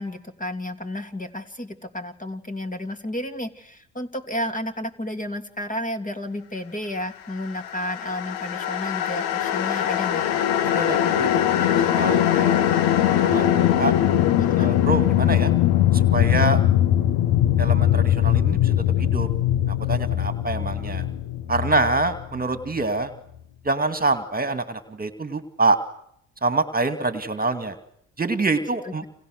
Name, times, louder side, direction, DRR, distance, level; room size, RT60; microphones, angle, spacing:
voice 1, 0.0-10.2 14.4-14.7 28.8-29.0, left 1 dB, 20° left, 6 dB, 3.0 m, -32 dB
sound 1, 7.6-22.8, left 11 dB, 80° left, 1.5 m, -21 dB
voice 2, 10.6-12.6 12.9-13.9 14.6-15.5 15.9-16.6 17.6-19.3 19.7-21.0 21.5-23.1 23.6-25.8 26.4-27.8 28.2-29.0, right 3 dB, 25° right, 9 dB, 2.2 m, -26 dB
29.5 x 27.5 x 6.5 m, 0.72 s
hypercardioid pair, 55°, 39 cm